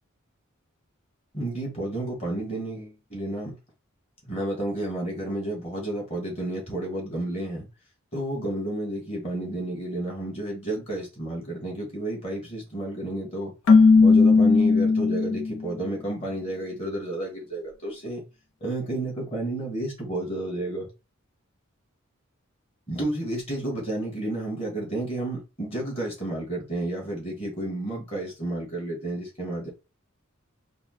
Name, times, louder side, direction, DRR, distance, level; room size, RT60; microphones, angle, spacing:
voice 1, 1.3-3.5 4.2-7.7 8.1-13.5 13.9-18.2 18.6-20.9 22.9-29.7, right 1 dB, 30° left, 1.9 m, -31 dB
Keyboard (musical), 13.7-15.7, left 4 dB, 90° left, 0.6 m, -17 dB
4.8 x 2.2 x 3.1 m
head